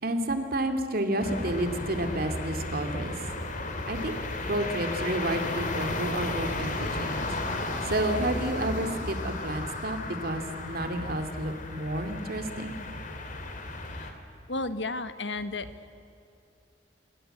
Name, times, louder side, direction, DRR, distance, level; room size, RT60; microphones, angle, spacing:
voice 1, 0.0-3.1 3.9-7.2 7.8-12.7, right 1 dB, 55° right, 6 dB, 2.6 m, -30 dB
sound 1, 1.2-14.1, left 2 dB, 45° left, 2.9 m, -34 dB
voice 2, 14.5-15.7, left 2 dB, 85° left, 11 dB, 1.5 m, -33 dB
27.5 x 23.0 x 7.9 m, 2.7 s
head